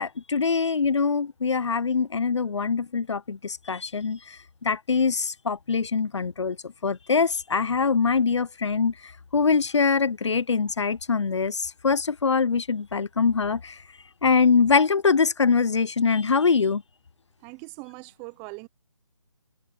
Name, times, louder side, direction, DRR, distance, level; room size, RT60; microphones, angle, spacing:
voice 1, 0.0-4.2 4.6-6.6 6.8-8.9 9.3-13.7 14.2-16.8, left 5 dB, 65° left, 0.9 m, -23 dB
voice 2, 17.4-18.7, right 29 dB, 15° right, 0.6 m, -41 dB
figure-of-eight pair, 150°, 16 cm